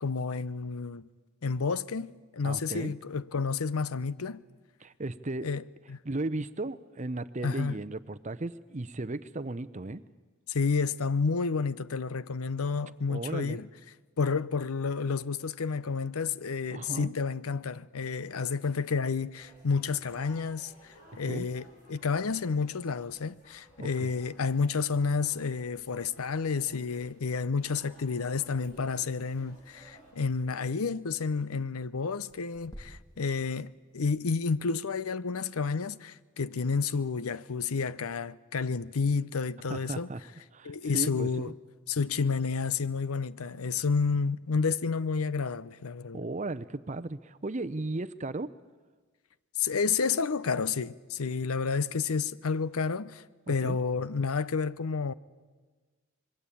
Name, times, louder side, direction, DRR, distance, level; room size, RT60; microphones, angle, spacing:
voice 1, 0.0-1.1 1.4-4.4 5.4-5.6 5.9-6.0 7.4-7.7 10.5-13.7 14.2-40.1 40.6-41.5 41.9-46.2 49.6-55.1, left 5 dB, 80° left, 0.7 m, -30 dB
voice 2, 2.4-2.9 4.8-5.5 6.0-10.0 13.1-13.6 16.7-17.1 21.2-21.5 23.8-24.1 39.7-40.2 40.5-41.5 46.1-48.5 53.5-53.8, right 2 dB, 35° right, 0.7 m, -35 dB
sound 1, 19.3-30.1, equal, 35° left, 6.9 m, -57 dB
sound 2, 23.9-34.3, equal, 20° left, 2.3 m, -58 dB
25.5 x 22.0 x 8.5 m
head